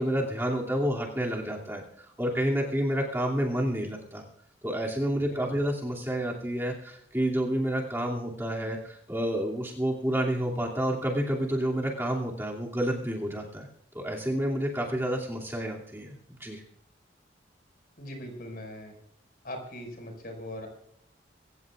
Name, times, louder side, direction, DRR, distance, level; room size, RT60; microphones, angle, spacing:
voice 1, 0.0-1.8 2.2-4.2 4.6-13.7 13.9-16.6, equal, 15° right, -3 dB, 2.6 m, -29 dB
voice 2, 18.0-18.9 19.4-20.7, left 1 dB, 50° left, 3 dB, 5.7 m, -40 dB
25.5 x 15.5 x 2.5 m, 0.70 s
head